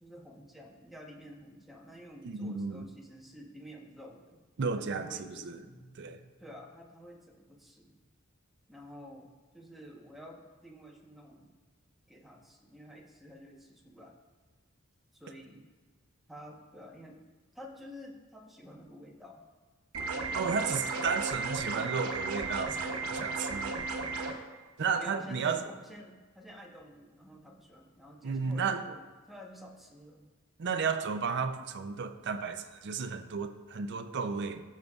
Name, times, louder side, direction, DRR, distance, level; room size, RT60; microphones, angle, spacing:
voice 1, 0.0-4.4 4.8-7.9 8.7-11.5 12.1-14.1 15.1-15.6 16.3-17.2 17.5-19.4 20.0-20.4 25.0-30.3, equal, ahead, -2 dB, 1.0 m, -50 dB
voice 2, 2.2-2.8 4.6-5.6 6.0-6.2 20.3-23.8 24.8-25.6 28.2-28.8 30.6-34.6, right 5 dB, 55° right, 8 dB, 0.5 m, -33 dB
sound 1, 19.9-24.3, right 3 dB, 85° right, 0.9 m, -34 dB
14.0 x 6.5 x 2.4 m, 1.3 s
head